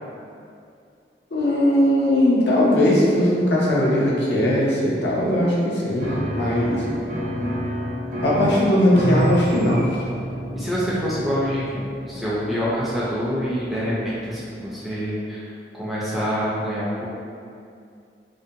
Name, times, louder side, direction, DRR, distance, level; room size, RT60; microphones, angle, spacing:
voice 1, 1.3-6.9 8.2-10.1, left 1 dB, 75° left, -5 dB, 0.5 m, -19 dB
Piano, 6.0-14.5, right 1 dB, 45° right, 0.6 m, -30 dB
voice 2, 10.5-15.5 15.8-17.1, equal, ahead, -9 dB, 0.4 m, -26 dB
2.6 x 2.1 x 2.6 m, 2.4 s
head